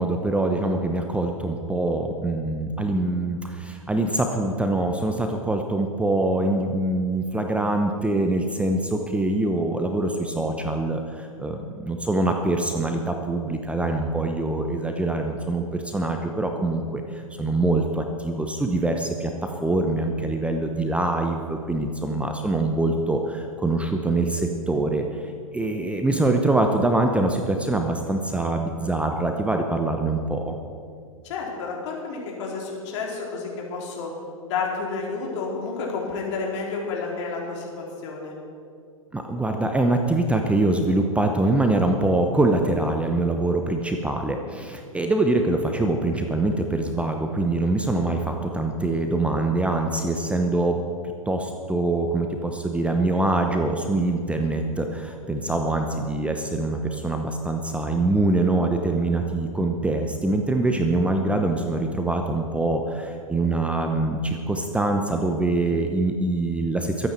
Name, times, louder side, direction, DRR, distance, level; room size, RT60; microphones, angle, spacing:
voice 1, 0.0-19.3 19.6-30.6 39.1-50.8 51.3-67.1, right 2 dB, 5° right, 4 dB, 0.8 m, -24 dB
voice 2, 31.2-34.1 34.5-38.3, left 4 dB, 55° left, -2 dB, 3.8 m, -30 dB
22.0 x 9.2 x 4.5 m, 2.3 s
figure-of-eight pair, 105°, 18 cm